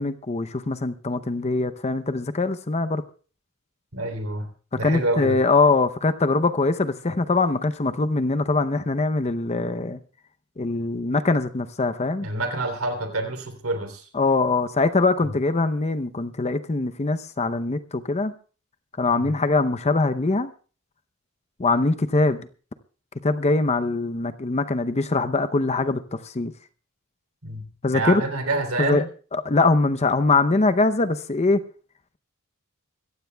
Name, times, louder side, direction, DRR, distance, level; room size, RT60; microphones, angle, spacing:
voice 1, 0.0-3.0 4.8-10.0 10.6-12.3 14.1-18.3 19.0-20.5 21.6-22.5 23.2-26.5 27.8-28.2 28.8-29.0 29.3-31.6, left 3 dB, 30° left, 0.7 m, -22 dB
voice 2, 3.9-5.4 12.2-14.1 15.2-15.3 19.1-19.4 27.4-29.1, right 2 dB, 70° right, 3.2 m, -28 dB
24.0 x 15.0 x 2.3 m
head